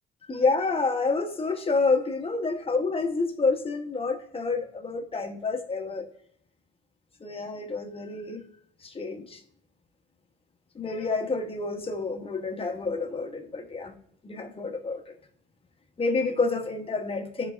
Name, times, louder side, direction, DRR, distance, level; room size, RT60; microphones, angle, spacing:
voice 1, 0.3-6.1 7.2-8.4 8.8-9.4 10.7-13.9 14.2-15.1 16.0-17.5, left 3 dB, 30° left, 5 dB, 1.0 m, -28 dB
10.0 x 4.0 x 2.4 m, 0.66 s
cardioid pair, 90°, 20 cm